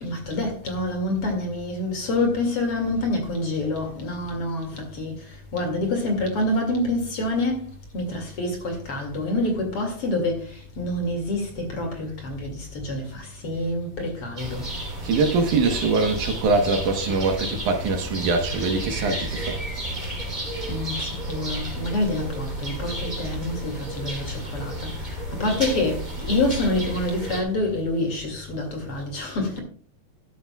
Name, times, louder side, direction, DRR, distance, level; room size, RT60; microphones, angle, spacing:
voice 1, 0.0-5.2 5.5-14.6 20.7-29.6, left 2 dB, 45° left, 2.8 m, -27 dB
sound 1, 14.4-27.4, right 1 dB, 15° right, 2.6 m, -32 dB
voice 2, 15.0-19.6, right 3 dB, 70° right, 2.5 m, -23 dB
12.5 x 12.5 x 2.3 m
omnidirectional pair, 3.9 m